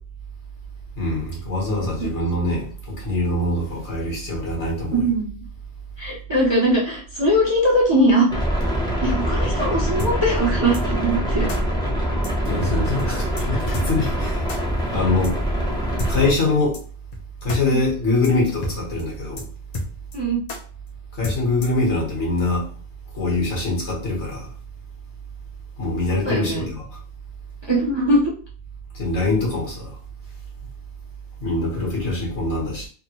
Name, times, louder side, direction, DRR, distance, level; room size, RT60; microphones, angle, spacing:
voice 1, 1.0-5.0 12.4-14.5 14.9-15.4 16.1-16.8 17.4-19.5 21.1-22.7 23.1-24.5 25.8-26.8 28.9-30.0 31.4-32.9, left 2 dB, 75° left, 1.6 m, -23 dB
voice 2, 4.9-5.4 6.0-8.4 9.0-11.5 17.7-17.8 20.1-20.4 26.1-26.6 27.7-28.3, right 1 dB, 30° right, 0.6 m, -21 dB
sound 1, 8.3-16.3, equal, 5° left, 0.7 m, -24 dB
sound 2, 10.0-10.1 10.7-10.8 11.5-11.6 12.2-12.3 12.6-12.7 13.0-13.1 13.4-13.5 13.7-13.9 14.5-14.6 15.2-15.3 16.0-16.1 16.7-16.8 17.1-17.2 17.5-17.6 17.9-18.0 18.2-18.3 18.6-18.7 19.0-19.1 19.4-19.5 19.7-20.2 20.5-20.6 21.2-21.8, left 1 dB, 40° left, 0.7 m, -29 dB
3.5 x 2.1 x 2.9 m
omnidirectional pair, 1.2 m